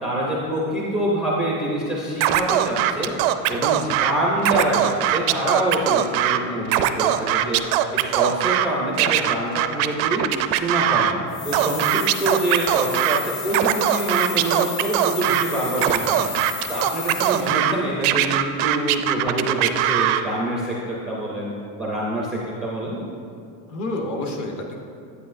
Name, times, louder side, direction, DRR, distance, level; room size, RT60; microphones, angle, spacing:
voice 1, 0.0-3.1 3.5-7.6 7.9-16.2 16.7-21.5 21.8-23.0, right 1 dB, ahead, -6 dB, 0.4 m, -26 dB
Scratching (performance technique), 2.2-4.1 4.4-6.4 6.7-8.7 9.0-11.1 11.5-13.2 13.5-15.4 15.8-17.7 18.0-20.2, right 12 dB, 70° right, 0.5 m, -21 dB
voice 2, 3.7-4.0 15.3-15.4 16.1-16.4 23.7-24.8, left 2 dB, 40° left, 2 dB, 0.9 m, -30 dB
sound 1, 11.3-17.7, left 6 dB, 70° left, 1.4 m, -34 dB
9.6 x 8.4 x 2.5 m, 2.5 s
cardioid pair, 170°, 44 cm